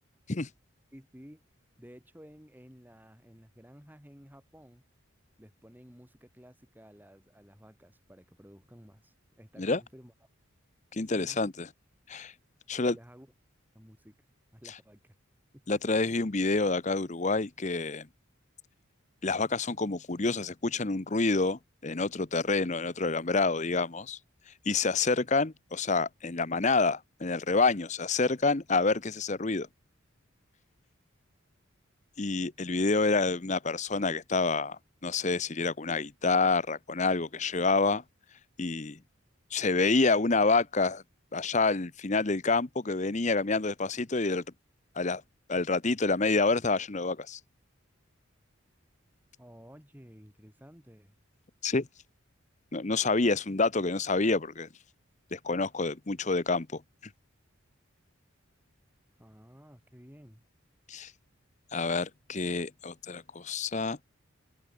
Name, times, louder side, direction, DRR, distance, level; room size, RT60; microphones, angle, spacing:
voice 1, 0.9-1.4 1.8-4.8 5.4-10.1 11.1-11.4 12.7-13.3 13.7-14.2 14.5-15.2 15.5-15.6 49.4-51.2 59.2-60.4, equal, 10° right, 3.9 m, -53 dB
voice 2, 10.9-11.7 12.1-12.3 12.7-13.0 15.7-18.1 19.2-24.2 24.7-29.7 32.2-38.0 38.6-39.0 39.5-41.0 41.3-44.4 45.0-45.2 45.5-47.4 51.6-51.9 52.7-54.7 55.3-56.8 60.9-61.1 61.7-64.0, left 3 dB, 35° left, 0.8 m, -28 dB
open air
head